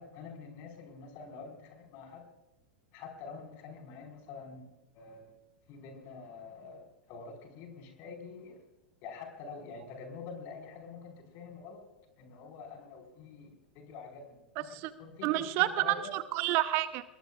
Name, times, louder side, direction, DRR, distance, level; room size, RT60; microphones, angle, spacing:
voice 1, 0.0-2.2 2.9-5.3 5.7-8.6 9.0-11.8 12.2-14.7 15.0-15.5 15.8-16.1, left 5 dB, 45° left, 3 dB, 4.9 m, -46 dB
voice 2, 15.2-17.0, right 15 dB, 45° right, 13 dB, 0.8 m, -29 dB
26.0 x 21.0 x 2.5 m, 0.97 s
figure-of-eight pair, 95°, 6 cm